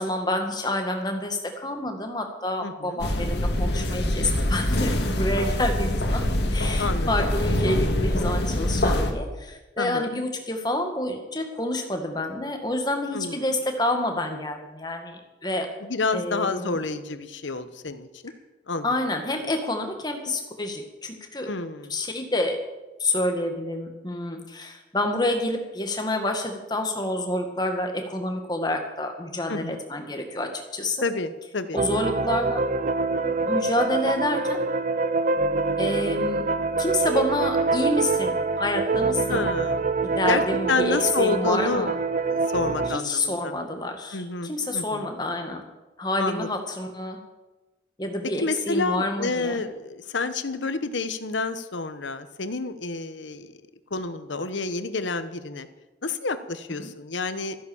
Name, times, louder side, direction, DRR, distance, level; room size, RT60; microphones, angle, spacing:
voice 1, 0.0-6.2 6.5-15.7 16.1-16.8 18.8-21.5 21.9-22.6 23.0-31.0 31.7-32.6 33.5-34.6 35.8-36.4 36.8-39.5 40.0-42.0 42.9-45.6 46.0-47.2 48.0-49.6 56.8-56.9, left 1 dB, 20° left, 4 dB, 1.8 m, -28 dB
voice 2, 2.6-3.0 6.8-7.3 9.8-10.1 13.1-13.4 15.8-18.3 18.7-19.0 21.5-22.0 29.5-29.8 31.0-31.8 39.3-39.9 40.3-40.4 40.7-41.9 42.3-43.5 44.1-45.1 46.2-46.5 48.4-53.5 53.9-55.7 56.0-57.6, left 3 dB, 90° left, 11 dB, 1.1 m, -29 dB
sound 1, 3.0-9.1, left 1 dB, 65° left, 2.1 m, -24 dB
sound 2, 31.8-43.0, right 3 dB, 40° right, 0.5 m, -25 dB
14.0 x 11.0 x 7.2 m, 1.1 s
head